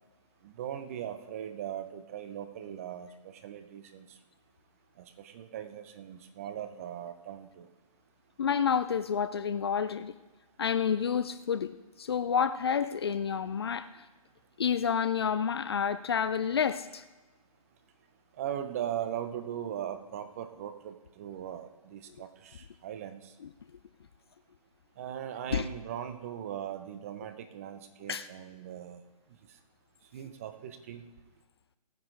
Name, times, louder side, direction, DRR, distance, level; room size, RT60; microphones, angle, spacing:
voice 1, 0.4-4.1 5.0-7.7 18.4-23.3 25.0-29.0 30.1-31.1, right 10 dB, 20° right, 10 dB, 0.7 m, -39 dB
voice 2, 8.4-10.1 10.6-13.9 14.6-17.0 25.5-25.7 28.1-28.3, left 7 dB, 40° left, 13 dB, 0.5 m, -29 dB
17.5 x 9.7 x 3.9 m, 1.2 s
figure-of-eight pair, 150°, 20 cm